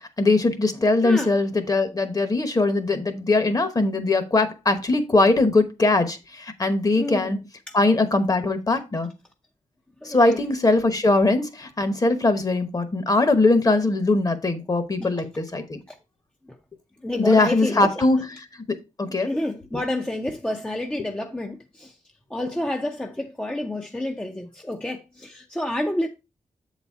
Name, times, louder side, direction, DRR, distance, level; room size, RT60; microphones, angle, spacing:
voice 1, 0.2-7.4 7.7-9.1 10.0-15.8 17.2-18.2 19.0-19.3, left 2 dB, 25° left, 1.0 m, -21 dB
voice 2, 1.0-1.3 6.9-7.4 7.7-7.8 10.0-10.4 12.1-12.2 15.0-15.1 15.9-16.0 17.0-18.0 19.2-21.9 22.3-26.1, left 1 dB, 10° left, 0.6 m, -29 dB
7.8 x 4.1 x 4.6 m
wide cardioid pair, 155°, 13 cm